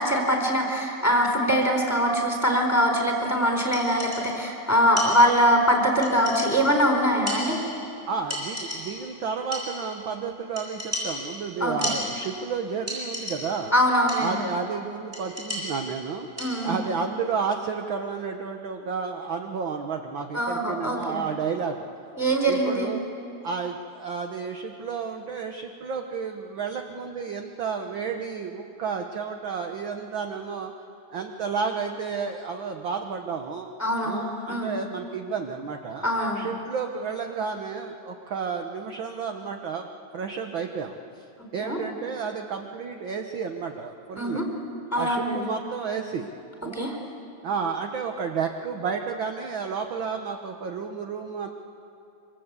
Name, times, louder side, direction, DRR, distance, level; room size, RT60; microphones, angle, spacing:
voice 1, 0.0-7.6 11.6-11.9 13.7-14.4 16.4-16.8 20.3-21.2 22.2-22.9 33.8-34.7 36.0-36.5 41.6-41.8 44.2-44.4 44.9-45.5 46.7-47.0, equal, 5° left, 1 dB, 4.0 m, -23 dB
sound 1, 3.7-4.5 5.0-5.6 6.0-6.8 7.3-8.0 8.3-9.2 9.5-10.1 10.6-12.5 12.9-13.7 14.1-14.6 15.1-16.9, left 1 dB, 15° right, 8.0 m, -35 dB
voice 2, 8.1-13.7 14.2-16.3 16.6-21.9 22.3-23.0 23.4-30.7 31.1-33.7 34.0-36.0 36.3-41.3 41.5-44.4 45.0-46.3 46.6-46.9 47.4-51.5, right 5 dB, 55° right, 4 dB, 1.5 m, -31 dB
27.0 x 25.5 x 8.3 m, 2.6 s
omnidirectional pair, 3.3 m